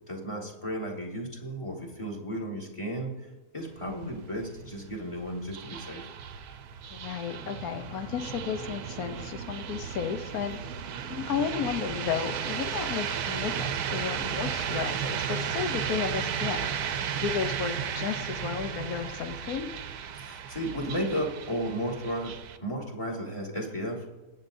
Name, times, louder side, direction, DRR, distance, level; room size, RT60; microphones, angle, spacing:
voice 1, 0.1-3.1 3.5-6.0 20.2-22.3 22.6-24.1, equal, 20° left, 0 dB, 1.8 m, -34 dB
sound 1, 3.6-22.6, right 8 dB, 80° right, 1.2 m, -34 dB
voice 2, 6.9-10.6 11.1-16.7 17.1-19.7, left 7 dB, 70° left, 7 dB, 1.2 m, -33 dB
21.0 x 7.6 x 2.6 m, 1.1 s
omnidirectional pair, 1.7 m